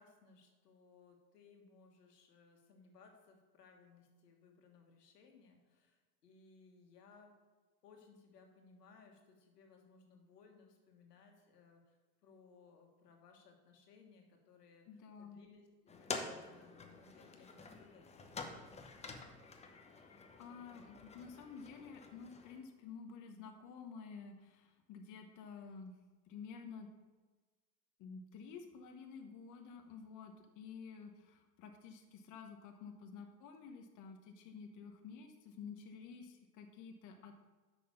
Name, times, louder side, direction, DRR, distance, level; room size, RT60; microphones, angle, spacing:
voice 1, 0.0-7.3 7.8-12.0 12.2-18.0 18.3-18.9, left 5 dB, 85° left, 3 dB, 1.6 m, -63 dB
voice 2, 14.9-15.4 19.9-25.9 26.3-26.9 28.0-37.3, left 5 dB, 40° left, 4 dB, 1.0 m, -51 dB
sound 1, 15.9-22.6, left 3 dB, 15° left, 0.8 m, -48 dB
6.3 x 5.8 x 6.9 m, 1.3 s
hypercardioid pair, 105°, 47 cm